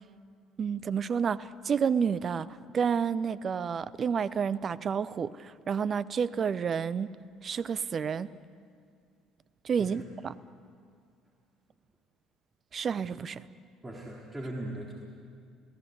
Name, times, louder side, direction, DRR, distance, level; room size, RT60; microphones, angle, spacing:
voice 1, 0.6-2.5 2.7-7.1 7.4-8.3 9.6-10.3 12.7-13.4, right 6 dB, 40° right, 18 dB, 0.7 m, -30 dB
voice 2, 13.8-14.9, right 1 dB, 20° right, -2 dB, 3.9 m, -39 dB
28.5 x 17.5 x 8.1 m, 2.2 s
hypercardioid pair, 60°, 0 cm